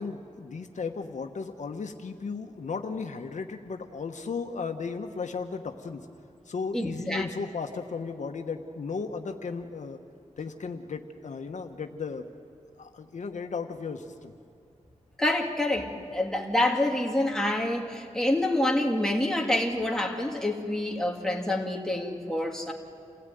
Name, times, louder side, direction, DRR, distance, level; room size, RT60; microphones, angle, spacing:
voice 1, 0.0-6.0 6.5-10.0 10.4-12.3 12.8-14.3, left 5 dB, 75° left, 5 dB, 1.2 m, -35 dB
voice 2, 6.7-7.3 15.2-22.7, left 1 dB, 5° left, 0 dB, 2.3 m, -27 dB
27.0 x 16.5 x 9.3 m, 2.5 s
wide cardioid pair, 125°, 13 cm